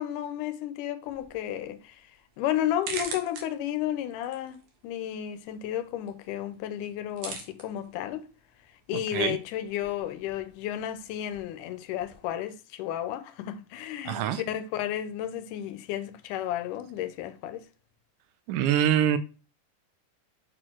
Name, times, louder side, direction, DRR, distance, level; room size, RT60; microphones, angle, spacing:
voice 1, 0.0-2.1 2.4-8.2 8.9-17.7, left 11 dB, 90° left, 2.2 m, -33 dB
Bone Being cracked, 1.0-12.3, right 5 dB, 60° right, 2.2 m, -45 dB
voice 2, 14.1-14.4 18.5-19.2, right 10 dB, 85° right, 2.3 m, -24 dB
6.5 x 4.4 x 4.4 m
omnidirectional pair, 3.6 m